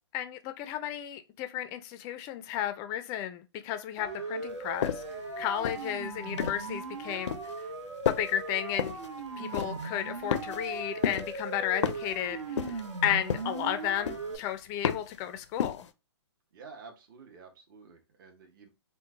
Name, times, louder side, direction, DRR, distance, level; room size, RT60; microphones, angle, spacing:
voice 1, 0.1-5.0 5.4-7.4 8.1-9.0 9.4-15.9, left 11 dB, 20° left, 0.3 m, -33 dB
Siren, 4.0-14.4, right 3 dB, 90° right, 0.9 m, -38 dB
sound 1, 4.8-5.2 5.6-6.7 7.3-7.6 8.1-8.4 8.8-9.1 9.5-9.9 10.3-10.8 11.0-11.4 11.8-12.2 12.6-13.0 13.3-13.7 14.1-14.4 14.8-15.2 15.6-15.9, left 8 dB, 85° left, 0.5 m, -32 dB
voice 2, 16.5-18.7, right 5 dB, 45° right, 0.9 m, -50 dB
3.0 x 2.1 x 3.5 m
hypercardioid pair, 145°, 15 cm